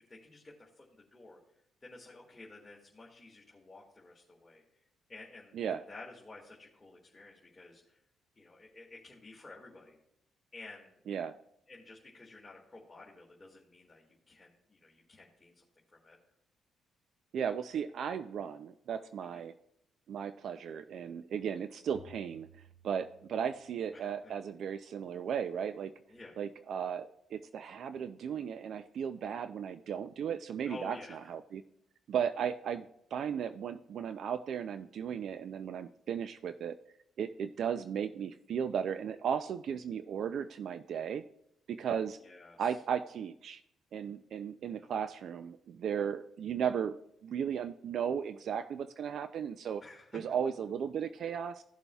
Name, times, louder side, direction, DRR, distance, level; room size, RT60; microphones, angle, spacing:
voice 1, 0.1-1.4 1.8-4.6 5.1-8.0 8.4-10.0 10.5-11.0 11.7-15.6 15.9-16.2 19.2-19.4 23.9-24.3 26.1-26.3 30.6-31.3 42.2-42.8 44.7-44.9 49.8-50.2, left 2 dB, 25° left, -3 dB, 2.0 m, -52 dB
voice 2, 17.3-19.5 20.1-22.5 22.8-25.9 26.4-31.0 31.3-31.6 32.1-32.9 33.1-36.8 37.2-41.2 41.7-42.2 42.6-43.6 43.9-47.0 47.2-49.8 50.1-51.6, right 8 dB, 65° right, 11 dB, 0.4 m, -35 dB
sound 1, 21.9-23.9, equal, 30° right, 1.8 m, -57 dB
16.5 x 6.9 x 2.3 m, 0.75 s
cardioid pair, 90°, 0 cm